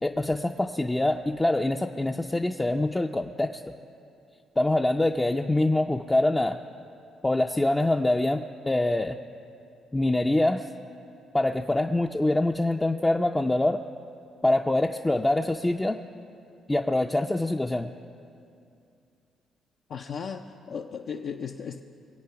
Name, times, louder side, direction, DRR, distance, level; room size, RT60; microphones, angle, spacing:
voice 1, 0.0-3.6 4.6-6.6 7.2-9.2 9.9-10.7 11.3-13.8 14.4-16.0 16.7-17.9, left 1 dB, 15° left, 3 dB, 0.5 m, -25 dB
voice 2, 19.9-21.8, left 6 dB, 65° left, 2 dB, 0.6 m, -36 dB
22.5 x 8.3 x 5.7 m, 2.6 s
cardioid pair, 90°, 0 cm